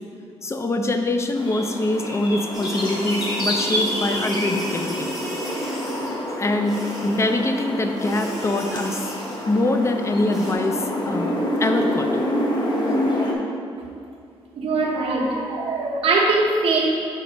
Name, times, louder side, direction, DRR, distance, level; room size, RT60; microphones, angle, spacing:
voice 1, 0.4-5.1 6.0-9.1 9.5-10.8 11.1-12.1, left 2 dB, 25° left, 6 dB, 0.5 m, -24 dB
sound 1, 1.4-13.3, equal, 45° left, 1.0 m, -27 dB
sound 2, 2.5-6.2 6.6-7.4 8.0-9.6 10.3-10.5, equal, 5° right, 1.6 m, -36 dB
voice 2, 14.6-16.9, right 3 dB, 70° right, -3 dB, 1.0 m, -21 dB
5.2 x 4.6 x 5.0 m, 2.4 s
cardioid pair, 105°, 10 cm